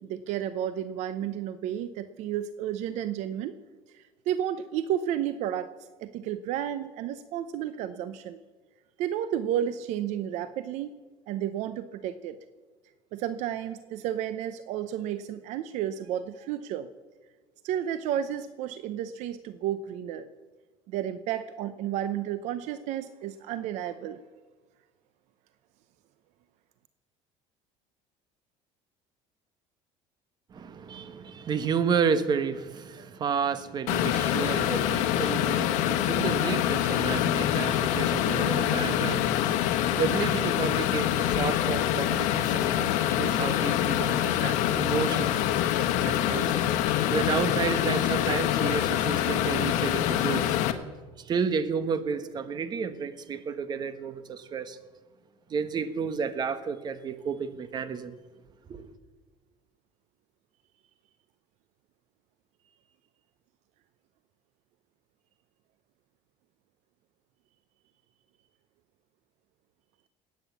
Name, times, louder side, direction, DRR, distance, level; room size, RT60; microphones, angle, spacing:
voice 1, 0.0-3.5 3.9-5.7 6.0-8.4 9.0-10.9 11.3-12.4 13.1-16.9 17.6-20.3 20.9-24.2, right 10 dB, 65° right, 0.7 m, -32 dB
voice 2, 30.5-45.3 46.0-46.6 47.1-50.6 51.2-54.8 55.5-58.1 58.7-58.9, right 6 dB, 35° right, 1.2 m, -31 dB
sound 1, 33.9-50.7, left 11 dB, 70° left, 1.3 m, -25 dB
21.0 x 9.1 x 7.2 m
cardioid pair, 135°, 13 cm